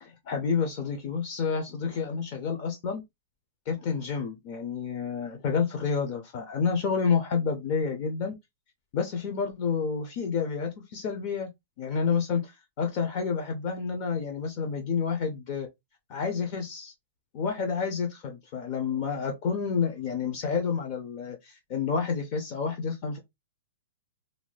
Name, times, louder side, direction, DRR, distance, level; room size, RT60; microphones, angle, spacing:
voice 1, 0.0-3.0 3.7-8.3 8.9-11.5 11.8-12.5 12.8-15.7 16.1-16.9 17.3-23.2, left 6 dB, 30° left, 0.6 m, -29 dB
2.6 x 2.3 x 3.2 m
hypercardioid pair, 175°, 0 cm